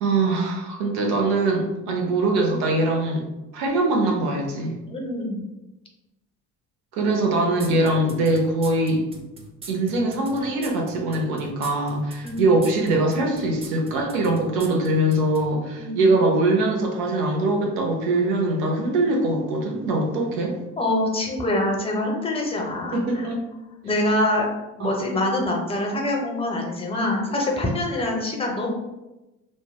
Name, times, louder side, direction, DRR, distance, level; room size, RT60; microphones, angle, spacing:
voice 1, 0.0-3.2 3.5-4.8 6.9-9.0 9.7-20.6 22.9-23.5 24.8-24.9, right 2 dB, 65° right, 0 dB, 0.8 m, -22 dB
voice 2, 4.9-5.5 12.2-12.6 15.8-16.0 20.8-23.3 23.8-24.5 24.8-28.7, left 1 dB, 15° left, 0 dB, 0.7 m, -25 dB
sound 1, 7.6-15.5, right 3 dB, 15° right, 0.3 m, -42 dB
3.3 x 2.1 x 2.3 m, 1.0 s
hypercardioid pair, 60°, 40 cm